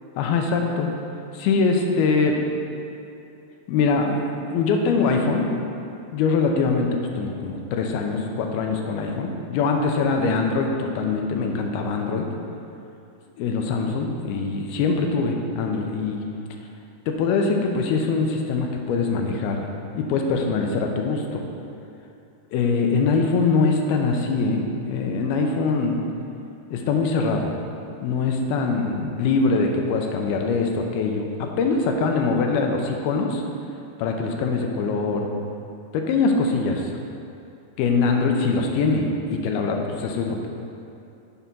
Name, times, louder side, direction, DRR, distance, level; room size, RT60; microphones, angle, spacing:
voice 1, 0.2-0.9 1.3-2.4 3.7-5.5 6.1-6.9 7.2-12.3 13.4-16.2 17.1-19.7 19.9-21.4 22.5-26.0 26.7-27.5 28.0-33.4 34.0-35.3 35.9-36.8 37.8-40.5, left 4 dB, 80° left, 2 dB, 2.3 m, -23 dB
9.9 x 4.7 x 5.3 m, 2.7 s
omnidirectional pair, 4.9 m